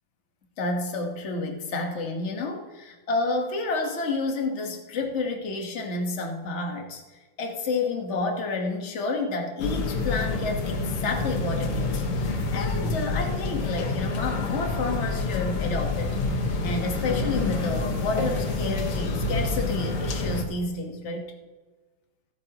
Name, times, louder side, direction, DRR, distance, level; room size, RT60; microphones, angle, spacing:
voice 1, 0.6-7.0 7.4-21.3, left 3 dB, 35° left, 1 dB, 1.6 m, -30 dB
sound 1, 9.6-20.4, left 3 dB, 90° left, 2.4 m, -28 dB
26.5 x 9.0 x 3.0 m, 1.2 s
omnidirectional pair, 2.3 m